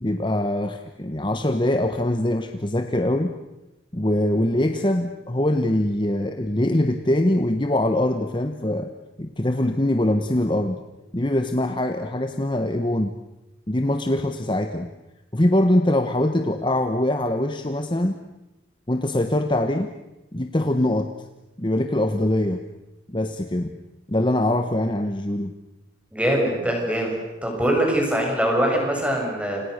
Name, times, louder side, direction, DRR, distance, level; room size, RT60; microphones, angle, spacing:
voice 1, 0.0-3.3 3.9-8.9 9.2-10.8 11.1-13.2 13.7-14.9 15.3-18.2 18.9-19.9 20.3-21.1 21.6-22.6 23.1-23.8 24.1-25.5, left 1 dB, 25° left, 7 dB, 1.2 m, -23 dB
voice 2, 26.1-27.2 27.4-29.6, right 1 dB, 5° right, 0 dB, 7.0 m, -22 dB
29.5 x 27.5 x 6.6 m, 0.98 s
head